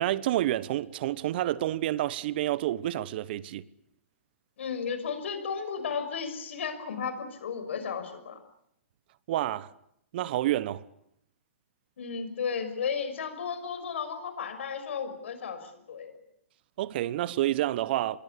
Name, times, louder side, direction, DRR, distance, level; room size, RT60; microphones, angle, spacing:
voice 1, 0.0-3.6 9.3-9.7 10.1-10.8 16.8-18.2, right 14 dB, 50° right, 1.2 m, -29 dB
voice 2, 4.6-8.4 12.0-16.2, left 6 dB, 70° left, 6.2 m, -34 dB
26.5 x 21.5 x 8.5 m
hypercardioid pair, 130°, 7 cm